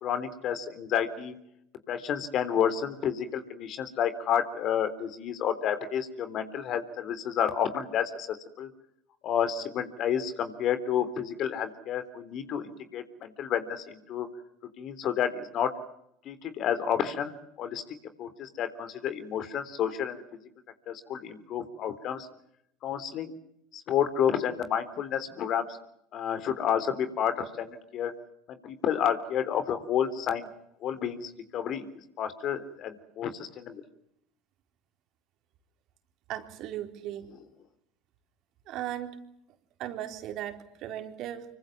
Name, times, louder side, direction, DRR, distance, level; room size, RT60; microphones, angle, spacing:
voice 1, 0.0-1.3 1.9-8.7 9.2-14.3 14.8-15.7 16.3-17.3 17.6-17.8 18.2-20.2 20.9-22.3 22.8-23.4 23.7-25.7 26.1-28.1 28.5-30.5 30.8-31.9 32.2-33.8, left 8 dB, 50° left, 12 dB, 3.6 m, -30 dB
voice 2, 36.3-37.2 38.7-39.2 39.8-41.5, right 12 dB, 55° right, 6 dB, 4.0 m, -37 dB
26.0 x 25.0 x 7.3 m, 0.77 s
hypercardioid pair, 80°, 0 cm